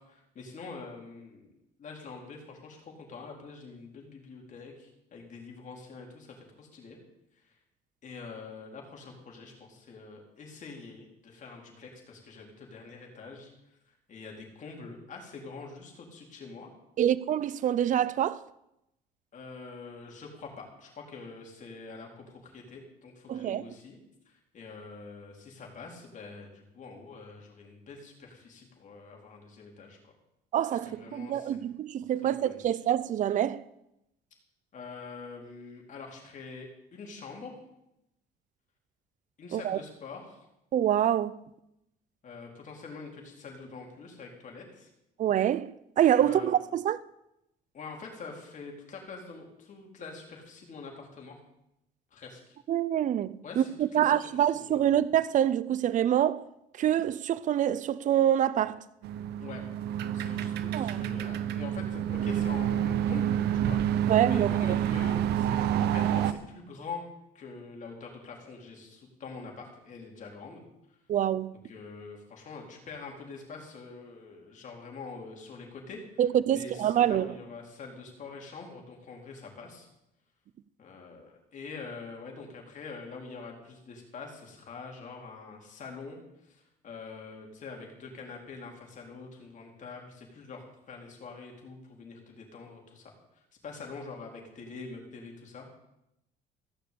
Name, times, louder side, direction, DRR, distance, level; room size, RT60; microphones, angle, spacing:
voice 1, 0.0-1.5 1.8-7.0 8.0-13.5 14.1-16.7 19.3-24.0 24.3-30.0 30.9-31.6 32.2-32.6 34.7-37.6 39.4-40.5 42.2-44.9 46.2-46.5 47.7-51.4 52.1-52.6 53.4-54.1 54.5-54.8 59.4-59.6 60.0-67.1 67.3-70.6 71.7-76.0 76.5-79.9 80.8-86.2 86.5-95.7, left 4 dB, 50° left, 4.3 m, -45 dB
voice 2, 17.0-18.4 23.3-23.7 30.5-33.6 39.5-39.8 40.7-41.4 45.2-47.0 52.7-56.4 56.8-58.8 60.7-61.1 64.1-64.8 71.1-71.5 76.2-77.3, right 10 dB, 50° right, 0.6 m, -26 dB
sound 1, 59.0-66.3, right 10 dB, 75° right, 0.8 m, -28 dB
16.0 x 6.9 x 8.6 m
cardioid pair, 110°, 17 cm